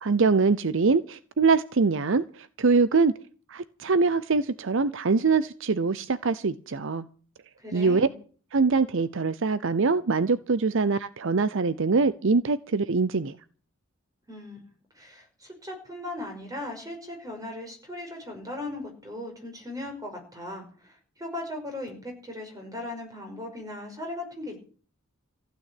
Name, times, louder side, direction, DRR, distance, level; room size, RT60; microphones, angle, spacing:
voice 1, 0.0-3.1 3.5-7.0 7.7-8.1 8.5-13.4, right 4 dB, 65° right, 16 dB, 0.7 m, -23 dB
voice 2, 7.6-8.2 14.3-14.6 14.9-24.6, left 1 dB, 15° right, 3 dB, 5.6 m, -38 dB
15.0 x 9.3 x 8.5 m, 0.43 s
head